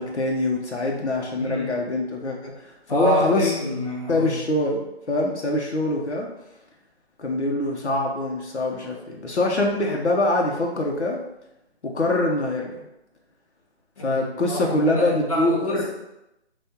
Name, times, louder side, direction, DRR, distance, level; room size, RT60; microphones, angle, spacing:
voice 1, 0.0-3.6 4.1-6.3 7.2-11.2 11.8-12.9 14.0-15.9, left 2 dB, 85° left, -1 dB, 1.0 m, -24 dB
voice 2, 1.4-1.7 2.9-4.4 14.0-15.9, right 1 dB, 30° left, -4 dB, 1.0 m, -28 dB
5.7 x 2.6 x 2.9 m, 0.89 s
figure-of-eight pair, 170°, 33 cm